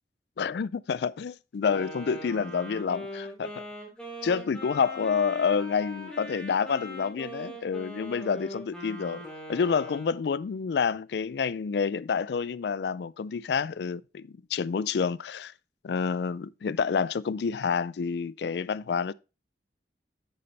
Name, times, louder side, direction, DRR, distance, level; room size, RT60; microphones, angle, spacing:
voice 1, 0.4-3.6 4.2-9.2 9.5-15.5 15.8-19.1, left 6 dB, 70° left, 0.4 m, -28 dB
Wind instrument woodwind instrument, 1.6-10.2, equal, 5° left, 3.1 m, -41 dB
8.9 x 6.9 x 3.3 m
head